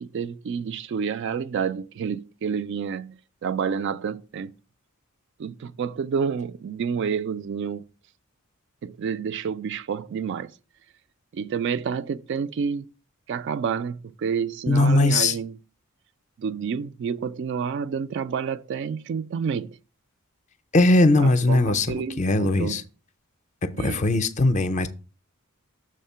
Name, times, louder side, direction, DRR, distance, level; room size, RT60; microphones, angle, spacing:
voice 1, 0.0-4.5 5.4-7.8 8.8-10.5 11.3-12.9 13.3-15.5 16.4-19.8 21.2-22.8 23.7-24.0, right 6 dB, 55° right, 0.3 m, -29 dB
voice 2, 14.7-15.4 20.7-22.8 23.8-24.9, left 2 dB, 35° left, 0.5 m, -20 dB
6.5 x 3.6 x 5.5 m
head